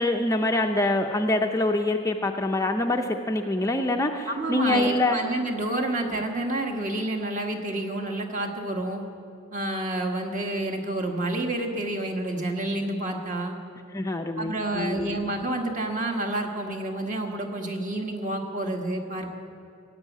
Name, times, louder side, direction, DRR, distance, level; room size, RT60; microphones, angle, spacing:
voice 1, 0.0-5.2 13.9-15.2, left 2 dB, 15° left, 4 dB, 0.5 m, -25 dB
voice 2, 4.3-9.0 9.5-13.5 14.4-19.3, right 1 dB, 35° right, 2 dB, 1.6 m, -29 dB
16.0 x 8.1 x 9.3 m, 2.5 s
head